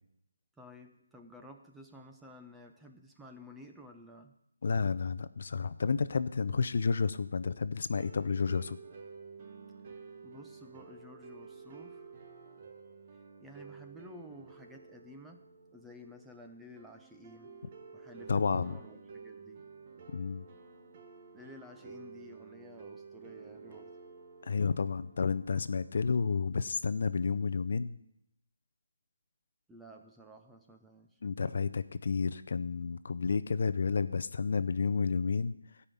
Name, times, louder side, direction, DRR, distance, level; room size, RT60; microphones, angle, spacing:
voice 1, 0.6-4.4 10.2-12.1 13.4-17.6 17.9-19.6 21.3-23.9 29.7-31.2, left 1 dB, 5° right, 3 dB, 0.7 m, -53 dB
voice 2, 4.6-8.8 18.3-18.8 20.1-20.5 24.4-28.0 31.2-35.6, left 5 dB, 50° left, 14 dB, 0.5 m, -31 dB
sound 1, 7.9-25.9, right 5 dB, 30° right, 1.1 m, -51 dB
12.0 x 5.6 x 8.4 m, 0.78 s
figure-of-eight pair, 165°, 0 cm